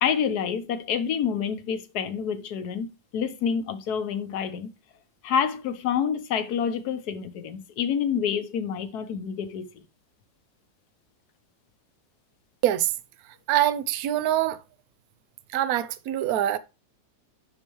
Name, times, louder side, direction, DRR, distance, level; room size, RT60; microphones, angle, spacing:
voice 1, 0.0-4.7 5.2-9.7, left 7 dB, 65° left, 1.3 m, -28 dB
voice 2, 13.5-14.6 15.5-16.6, right 12 dB, 65° right, 1.0 m, -24 dB
11.0 x 4.2 x 3.0 m
omnidirectional pair, 2.0 m